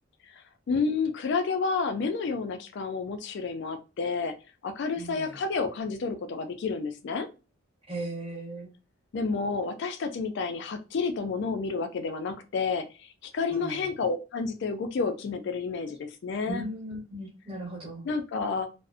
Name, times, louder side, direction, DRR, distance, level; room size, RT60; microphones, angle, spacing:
voice 1, 0.7-4.3 4.6-7.3 9.1-12.9 13.3-16.6 18.0-18.7, left 4 dB, 55° left, 7 dB, 0.3 m, -30 dB
voice 2, 5.0-5.4 7.9-8.7 13.5-13.9 16.5-18.0, right 1 dB, 25° right, -2 dB, 1.0 m, -37 dB
2.5 x 2.0 x 2.4 m, 0.31 s
head